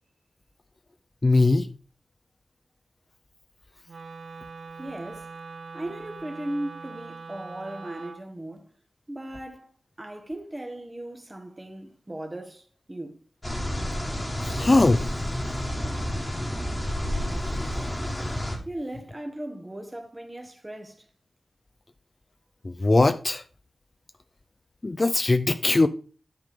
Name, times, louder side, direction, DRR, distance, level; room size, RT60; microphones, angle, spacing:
voice 1, 1.2-1.7 14.4-15.0 22.6-23.4 24.8-25.9, left 2 dB, 35° left, 0.4 m, -20 dB
Wind instrument woodwind instrument, 3.9-8.2, right 4 dB, 70° right, 0.7 m, -42 dB
voice 2, 4.8-5.3 5.7-8.7 9.1-9.7 10.0-13.1 18.6-21.1, right 1 dB, 20° right, 1.3 m, -37 dB
sound 1, 13.4-18.6, equal, 15° left, 1.8 m, -30 dB
10.5 x 3.8 x 5.1 m
wide cardioid pair, 85°, 0 cm